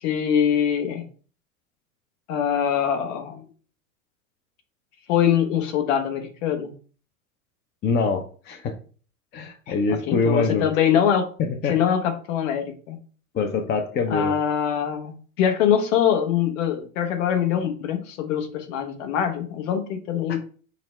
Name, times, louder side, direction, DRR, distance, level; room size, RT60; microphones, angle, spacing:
voice 1, 0.0-1.1 2.3-3.4 5.1-6.7 9.7-11.3 11.6-13.0 14.1-20.4, left 8 dB, 65° left, 6 dB, 1.1 m, -23 dB
voice 2, 7.8-8.7 9.3-10.7 11.4-11.8 13.3-14.3, left 4 dB, 25° left, 6 dB, 0.6 m, -24 dB
5.7 x 2.1 x 4.3 m, 0.41 s
hypercardioid pair, 90°, 42 cm